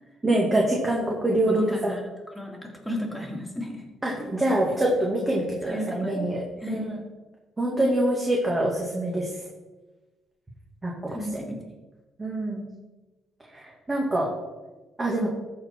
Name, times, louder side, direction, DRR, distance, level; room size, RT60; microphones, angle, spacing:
voice 1, 0.2-1.9 4.0-6.8 7.6-9.3 10.8-11.2 12.2-12.7 13.5-14.3 15.0-15.3, right 1 dB, 20° right, -3 dB, 2.0 m, -25 dB
voice 2, 1.5-2.0 2.3-3.8 4.4-4.5 5.7-6.3 6.6-6.9 11.1-11.6, left 1 dB, ahead, -1 dB, 2.7 m, -33 dB
13.5 x 4.7 x 4.5 m, 1.2 s
cardioid pair, 90°, 0 cm